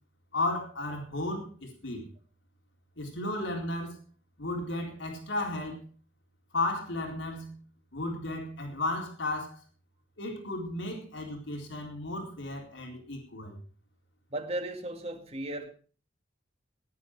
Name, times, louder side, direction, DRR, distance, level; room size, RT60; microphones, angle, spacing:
voice 1, 0.3-2.1 3.0-4.0 4.4-5.8 6.5-7.6 7.9-9.6 10.2-13.6, left 2 dB, 85° left, 1 dB, 4.0 m, -34 dB
voice 2, 14.3-15.7, right 1 dB, 35° right, 5 dB, 2.1 m, -35 dB
17.5 x 11.0 x 4.8 m, 0.39 s
head